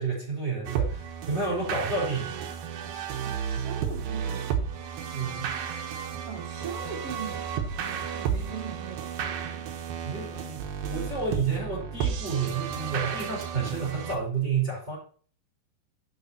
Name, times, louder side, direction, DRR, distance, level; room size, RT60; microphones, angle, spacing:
voice 1, 0.0-2.3 5.1-5.6 10.0-15.0, right 4 dB, 15° right, 4.8 m, -30 dB
sound 1, 0.7-14.2, right 7 dB, 70° right, 2.6 m, -33 dB
voice 2, 3.2-4.7 6.2-9.7, right 6 dB, 45° right, 2.3 m, -41 dB
12.0 x 7.3 x 2.9 m
omnidirectional pair, 4.9 m